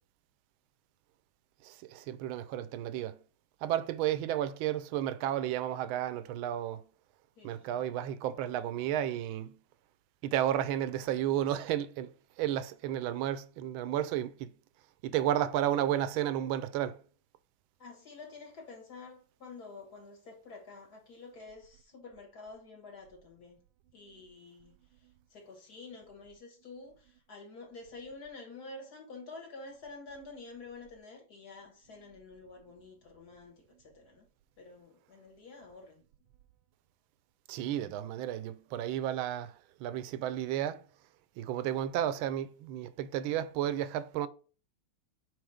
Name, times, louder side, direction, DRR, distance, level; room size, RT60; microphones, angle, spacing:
voice 1, 1.6-3.2 3.6-6.8 7.4-9.5 10.2-12.1 12.4-14.5 15.0-17.0 37.5-39.5 39.8-40.8 41.4-44.3, right 11 dB, 75° right, 1.3 m, -32 dB
voice 2, 7.4-7.8 17.8-23.6 23.9-34.3 34.6-36.0, left 3 dB, 50° left, 1.9 m, -49 dB
4.7 x 4.2 x 4.9 m
omnidirectional pair, 2.4 m